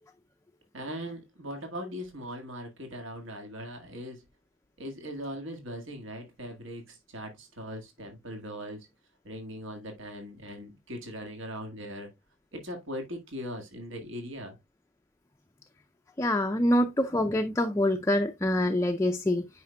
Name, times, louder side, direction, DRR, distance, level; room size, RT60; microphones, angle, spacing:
voice 1, 0.7-4.3 4.8-8.9 9.2-12.1 12.5-14.6, equal, 70° right, 1.8 m, -40 dB
voice 2, 16.2-19.5, left 1 dB, 15° left, 0.4 m, -25 dB
9.3 x 5.2 x 2.2 m
head